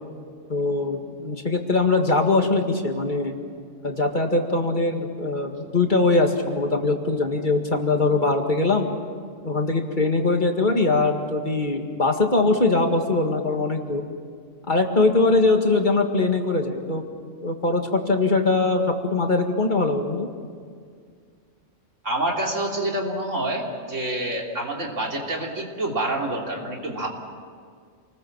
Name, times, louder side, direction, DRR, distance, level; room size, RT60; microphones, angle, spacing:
voice 1, 0.5-3.3 3.8-8.9 9.4-14.0 14.7-17.0 17.4-20.3, left 3 dB, 40° left, 4 dB, 2.0 m, -22 dB
voice 2, 22.0-27.1, right 1 dB, 85° right, 0 dB, 3.6 m, -27 dB
28.0 x 20.0 x 7.3 m, 2.1 s
omnidirectional pair, 1.3 m